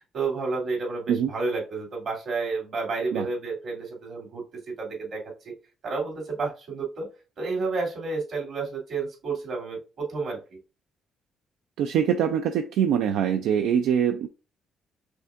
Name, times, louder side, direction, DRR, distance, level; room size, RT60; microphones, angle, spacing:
voice 1, 0.1-4.4 4.8-5.5 5.8-7.1 7.4-10.4, right 4 dB, 65° right, 2.5 m, -30 dB
voice 2, 11.8-14.3, right 8 dB, 90° right, 0.3 m, -23 dB
5.1 x 3.5 x 2.5 m
cardioid pair, 90°, 0 cm